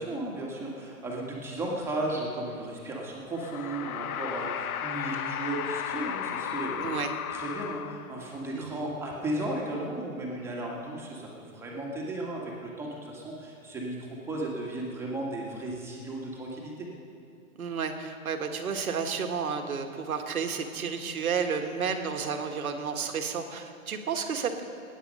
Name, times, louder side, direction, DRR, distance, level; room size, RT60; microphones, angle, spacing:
voice 1, 0.0-7.0 7.3-16.9, right 1 dB, 5° right, -3 dB, 1.8 m, -35 dB
sound 1, 3.3-8.4, left 9 dB, 85° left, 0.8 m, -34 dB
voice 2, 6.8-7.1 8.5-8.8 17.6-24.6, right 6 dB, 80° right, 5 dB, 1.8 m, -31 dB
19.5 x 9.7 x 5.5 m, 2.6 s
hypercardioid pair, 155°, 42 cm